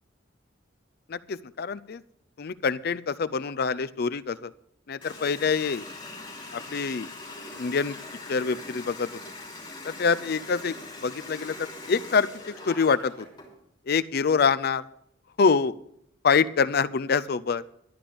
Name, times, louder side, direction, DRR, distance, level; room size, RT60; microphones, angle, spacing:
voice 1, 1.1-2.0 2.4-4.5 4.9-5.8 6.5-7.1 7.6-8.0 8.3-9.2 9.8-10.8 11.0-13.3 13.9-14.9 15.4-15.7 16.2-17.6, left 5 dB, 55° left, 14 dB, 0.5 m, -25 dB
Water tap faucet, 5.0-13.5, left 2 dB, 25° left, 3.1 m, -42 dB
12.0 x 10.0 x 5.2 m, 0.74 s
head